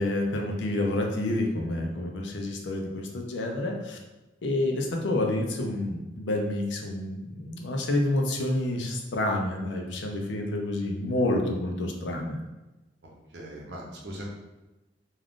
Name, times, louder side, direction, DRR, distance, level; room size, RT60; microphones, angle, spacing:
voice 1, 0.0-4.0 4.4-12.4, left 1 dB, 90° left, 2 dB, 0.5 m, -28 dB
voice 2, 13.0-14.3, equal, 70° right, -2 dB, 0.7 m, -40 dB
2.4 x 2.3 x 3.5 m, 1.1 s
head